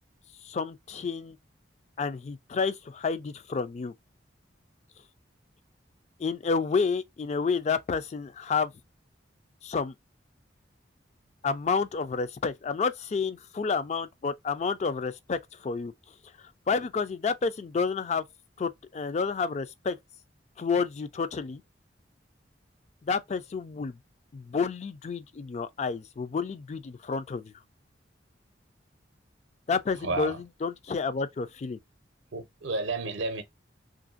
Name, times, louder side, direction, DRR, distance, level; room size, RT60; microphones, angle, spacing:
voice 1, 0.4-1.4 2.0-3.9 6.2-8.7 9.6-9.9 11.4-15.9 16.7-18.2 18.6-20.0 20.6-21.6 23.1-24.0 24.3-27.5 29.7-31.8, left 5 dB, 35° left, 0.3 m, -30 dB
voice 2, 30.0-30.4 32.3-33.4, right 3 dB, 75° right, 0.6 m, -31 dB
3.0 x 2.5 x 2.4 m
head